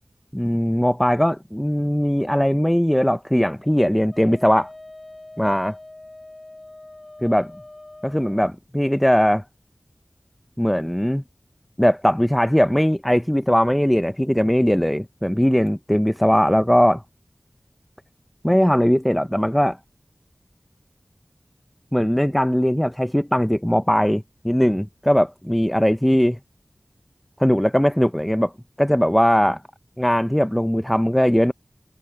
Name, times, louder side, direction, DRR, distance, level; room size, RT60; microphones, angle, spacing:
voice 1, 0.3-4.7 5.4-5.7 7.2-7.5 8.0-9.4 10.6-11.2 11.8-17.0 18.4-19.8 21.9-26.4 27.4-28.5 28.8-29.6 30.0-31.5, equal, 10° left, 0.7 m, -19 dB
Wind instrument woodwind instrument, 4.1-8.5, left 2 dB, 45° left, 6.2 m, -43 dB
wide cardioid pair, 50°, 0 cm